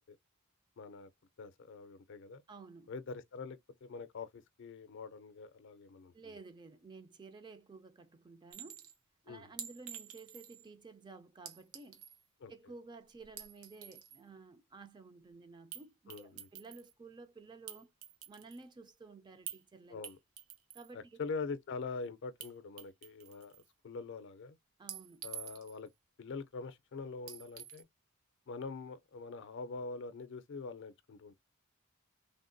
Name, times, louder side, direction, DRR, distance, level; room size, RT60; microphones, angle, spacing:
voice 1, 0.8-1.1 1.4-2.4 2.9-6.3 9.3-9.5 12.4-12.5 16.1-16.5 19.9-20.2 20.9-23.6 23.8-24.6 25.2-25.9 26.2-27.9 28.5-31.3, left 4 dB, 60° left, 0.4 m, -44 dB
voice 2, 2.5-2.9 6.1-8.9 9.2-12.0 12.5-17.9 18.3-20.0 20.7-21.2 24.8-25.3, right 3 dB, 20° right, 0.3 m, -53 dB
Chink clink, 8.5-8.9 9.6-10.7 11.4-12.2 13.2-14.2 15.7-15.8 16.1-16.9 17.7-18.6 19.5-19.6 20.0-20.9 22.4-22.5 22.8-23.6 24.9-25.9 27.3-27.8, right 9 dB, 80° right, 0.7 m, -48 dB
3.4 x 2.2 x 2.5 m
head